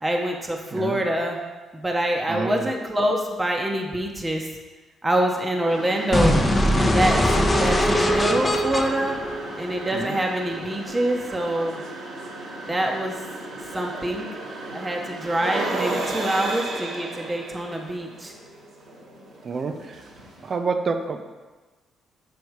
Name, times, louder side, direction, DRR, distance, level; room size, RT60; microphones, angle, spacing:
voice 1, 0.0-1.4 1.7-4.5 5.0-6.4 6.8-7.2 7.5-9.2 9.6-11.8 12.6-13.1 13.7-14.3 14.7-18.3, right 1 dB, 15° right, 1 dB, 0.8 m, -25 dB
voice 2, 2.3-2.7 9.9-10.1 19.4-19.7 20.4-21.2, right 4 dB, 45° right, 6 dB, 0.6 m, -27 dB
sound 1, 5.6-20.6, right 2 dB, 75° right, 1.5 m, -35 dB
sound 2, 6.1-10.1, equal, 20° left, 0.8 m, -21 dB
6.5 x 4.1 x 4.8 m, 1.3 s
cardioid pair, 90°, 0 cm